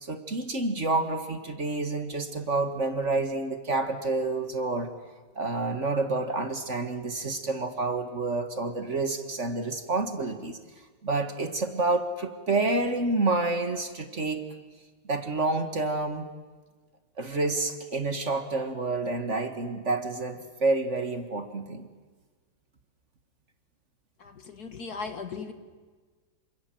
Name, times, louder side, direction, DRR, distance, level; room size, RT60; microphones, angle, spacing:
voice 1, 0.0-4.9 5.4-10.6 11.0-14.5 15.0-16.3 17.2-21.9, right 3 dB, 35° right, 8 dB, 1.8 m, -28 dB
voice 2, 24.2-25.5, left 4 dB, 50° left, 8 dB, 2.1 m, -37 dB
28.0 x 26.0 x 7.7 m, 1.4 s
omnidirectional pair, 2.3 m